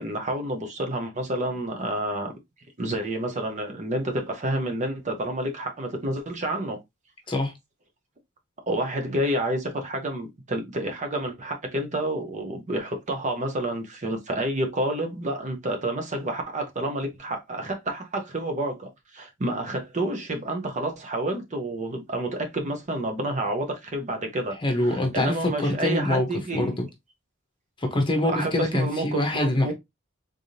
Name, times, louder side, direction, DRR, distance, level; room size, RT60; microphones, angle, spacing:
voice 1, 0.0-2.4 2.8-6.8 8.7-26.7 28.3-29.7, right 1 dB, 35° right, 0.8 m, -29 dB
voice 2, 24.6-26.3 26.5-26.9 27.8-29.7, left 1 dB, 25° left, 0.9 m, -24 dB
3.7 x 3.5 x 2.7 m
head